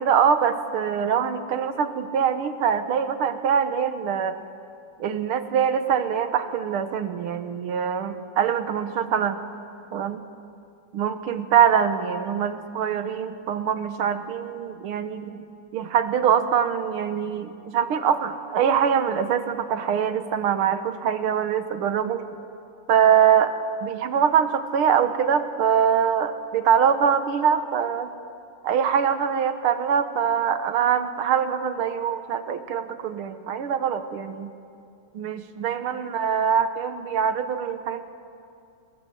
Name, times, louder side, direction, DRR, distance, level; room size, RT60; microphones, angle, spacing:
voice 1, 0.0-4.4 5.0-9.4 9.9-10.2 10.9-15.4 15.7-22.2 22.9-23.5 23.8-28.1 28.6-34.5 35.1-38.0, right 8 dB, 80° right, 10 dB, 2.1 m, -23 dB
26.5 x 21.0 x 8.0 m, 2.5 s
omnidirectional pair, 2.4 m